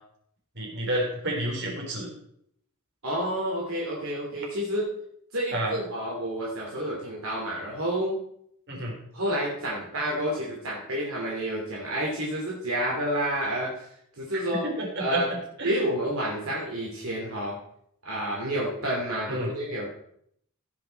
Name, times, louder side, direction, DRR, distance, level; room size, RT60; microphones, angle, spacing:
voice 1, 0.6-2.1 5.5-5.7 8.7-9.0 14.5-15.7 19.3-19.5, right 1 dB, 55° right, -2 dB, 3.7 m, -30 dB
voice 2, 3.0-4.9 5.3-8.2 9.1-13.9 14.2-14.6 15.0-15.3 15.6-17.6 18.0-19.9, equal, 70° right, -4 dB, 2.6 m, -29 dB
16.0 x 6.0 x 4.4 m, 0.70 s
head